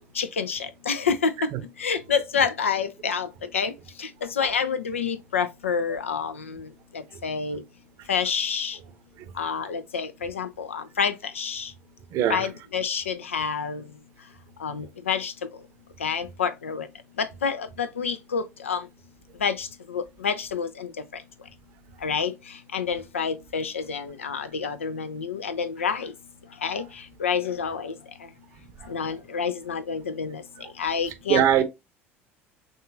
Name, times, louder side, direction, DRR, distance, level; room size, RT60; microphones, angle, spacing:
voice 1, 0.2-1.3 1.8-3.3 3.5-3.7 4.0-4.1 4.4-6.7 7.2-7.6 8.1-8.8 9.4-11.7 12.3-13.8 14.6-15.3 16.0-16.9 17.2-18.8 19.4-20.9 22.0-22.3 22.7-26.1 26.6-26.8 27.2-27.9 28.9-30.4 30.8-31.6, left 6 dB, 80° left, 0.4 m, -28 dB
voice 2, 12.1-12.4 31.3-31.6, right 10 dB, 50° right, 0.7 m, -20 dB
6.3 x 2.4 x 2.6 m
figure-of-eight pair, 65°, 7 cm